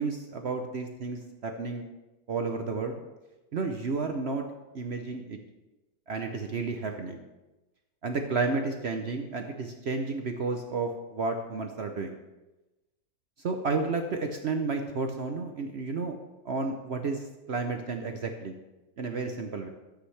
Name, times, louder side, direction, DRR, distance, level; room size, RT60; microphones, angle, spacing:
voice 1, 0.0-1.9 2.3-3.0 3.5-4.4 4.7-5.4 6.1-7.2 8.0-12.2 13.4-16.2 16.4-18.6 19.0-19.7, right 4 dB, 55° right, 5 dB, 0.7 m, -32 dB
13.0 x 8.3 x 3.3 m, 1.1 s
omnidirectional pair, 1.8 m